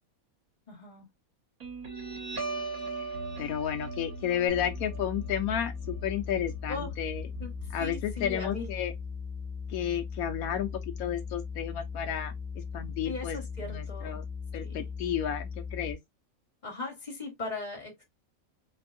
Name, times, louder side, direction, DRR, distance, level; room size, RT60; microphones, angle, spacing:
voice 1, 0.7-1.1 6.7-6.9 7.4-7.5 7.8-8.7 13.0-14.2 14.6-14.9 16.6-18.0, left 3 dB, 30° left, 1.7 m, -38 dB
Guitar, 1.6-8.6, right 3 dB, 75° right, 2.4 m, -39 dB
voice 2, 3.4-7.2 7.7-8.9 9.7-13.4 13.6-14.2 14.5-16.0, left 9 dB, 80° left, 1.0 m, -32 dB
sound 1, 4.5-15.9, left 5 dB, 5° right, 0.7 m, -38 dB
4.1 x 2.6 x 2.5 m
omnidirectional pair, 1.5 m